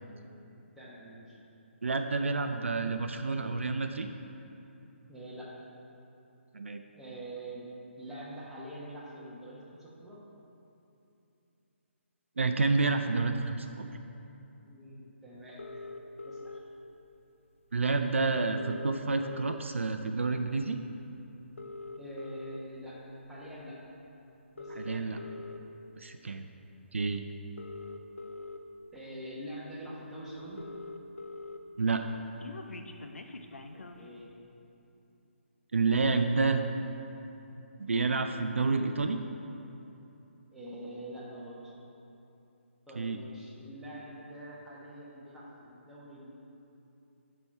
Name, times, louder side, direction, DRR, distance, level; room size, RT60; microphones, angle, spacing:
voice 1, 0.4-1.4 5.1-5.5 7.0-7.7 8.0-10.2 14.6-15.7 16.2-16.6 22.0-23.8 24.5-25.2 28.9-30.6 33.7-34.3 40.5-41.7 42.9-46.3, right 1 dB, 5° right, -9 dB, 1.3 m, -45 dB
voice 2, 1.8-4.1 6.5-6.8 12.4-13.9 17.7-20.8 24.8-25.2 26.0-26.4 26.9-27.2 31.8-32.0 35.7-36.6 37.9-39.2 43.0-43.2, right 4 dB, 70° right, 7 dB, 0.4 m, -29 dB
sound 1, 15.6-16.6 17.8-17.9 18.1-18.2 18.4-19.9 20.3-20.6 21.4-22.6 23.3-23.5 24.4-25.6 26.8-26.9 27.4-28.6 29.3-29.4 29.7-29.8 30.0-30.1 30.3-31.6 31.9-34.1, left 3 dB, 75° left, 0.6 m, -43 dB
10.5 x 4.3 x 4.5 m, 2.9 s
figure-of-eight pair, 140°, 7 cm